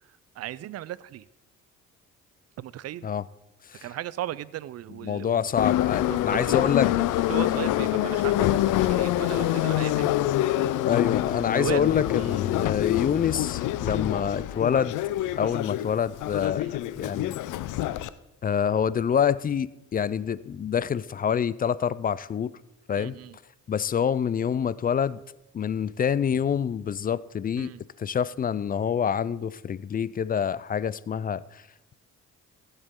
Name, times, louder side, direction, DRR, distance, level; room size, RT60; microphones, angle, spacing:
voice 1, 0.4-1.3 2.6-3.1 3.8-5.4 6.1-6.7 7.3-10.1 11.5-11.9 12.2-12.4 15.4-15.7 16.4-16.8 23.0-23.4 27.6-27.8, right 13 dB, 55° right, 0.5 m, -36 dB
voice 2, 5.0-6.9 10.8-15.0 15.4-17.4 18.4-22.5 22.9-23.2 23.7-25.2 25.5-27.7 28.0-31.6, left 8 dB, 30° left, 0.3 m, -26 dB
Subway metro underground, 5.6-18.1, left 14 dB, 85° left, 0.5 m, -26 dB
15.5 x 8.1 x 3.7 m
cardioid pair, 90°, 30 cm